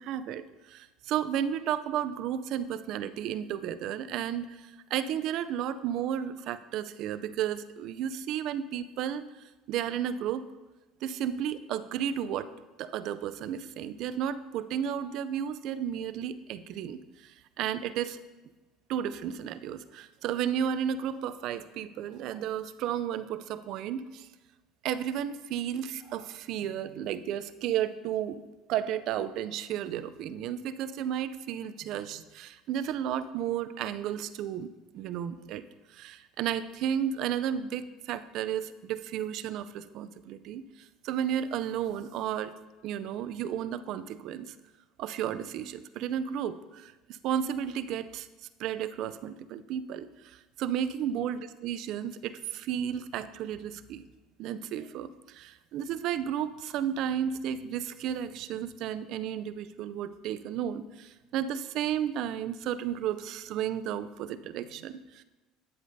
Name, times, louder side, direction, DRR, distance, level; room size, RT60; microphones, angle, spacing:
voice 1, 0.0-9.2 9.7-10.5 11.0-12.5 12.8-18.2 18.9-24.3 24.8-28.4 28.7-34.7 34.9-35.6 35.9-40.6 41.0-42.5 42.8-44.6 45.0-48.3 48.6-54.0 54.4-65.2, right 9 dB, 60° right, 13 dB, 0.4 m, -33 dB
9.4 x 8.2 x 2.7 m, 1.1 s
supercardioid pair, 110°, 0 cm